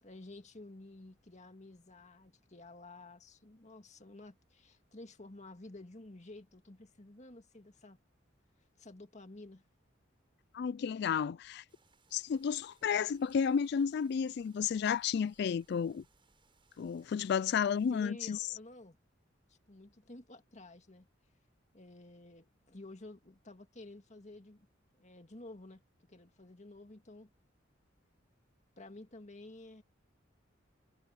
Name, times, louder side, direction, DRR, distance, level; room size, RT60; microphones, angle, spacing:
voice 1, 0.0-8.0 8.8-9.6 17.2-17.3 17.9-19.0 19.5-21.1 21.7-24.7 25.0-25.8 26.1-27.3 28.8-29.8, left 2 dB, 40° left, 2.0 m, -52 dB
voice 2, 10.5-11.6 12.1-16.0 16.8-18.4, left 7 dB, 60° left, 0.3 m, -32 dB
sound 1, 11.7-18.0, right 4 dB, 25° right, 7.0 m, -71 dB
head